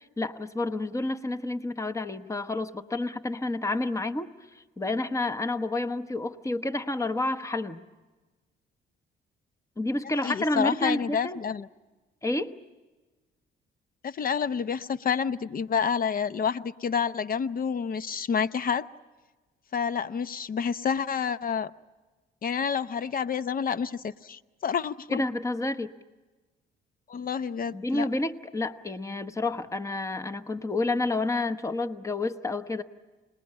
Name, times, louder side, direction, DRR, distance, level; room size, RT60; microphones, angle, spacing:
voice 1, 0.2-4.3 4.8-7.8 9.8-11.4 12.2-12.6 25.1-25.9 27.7-32.8, left 2 dB, 15° left, 11 dB, 1.1 m, -29 dB
voice 2, 10.2-11.7 14.0-18.8 19.7-21.7 22.4-25.2 27.1-28.1, left 6 dB, 45° left, 15 dB, 0.8 m, -29 dB
27.5 x 20.5 x 8.8 m, 1.2 s
cardioid pair, 90°, 20 cm